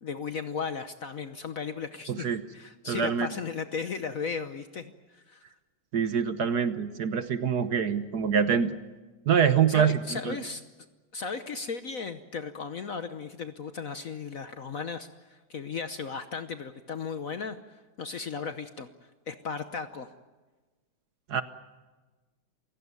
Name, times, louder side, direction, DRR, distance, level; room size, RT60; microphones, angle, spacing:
voice 1, 0.0-2.3 2.5-5.4 9.7-10.6 11.1-18.9 19.3-20.1, left 5 dB, 50° left, 10 dB, 1.1 m, -36 dB
voice 2, 2.1-2.4 2.9-3.3 5.9-8.8 9.3-10.4 21.3-21.4, right 7 dB, 55° right, 11 dB, 1.4 m, -25 dB
28.5 x 16.5 x 9.5 m, 1.3 s
omnidirectional pair, 2.3 m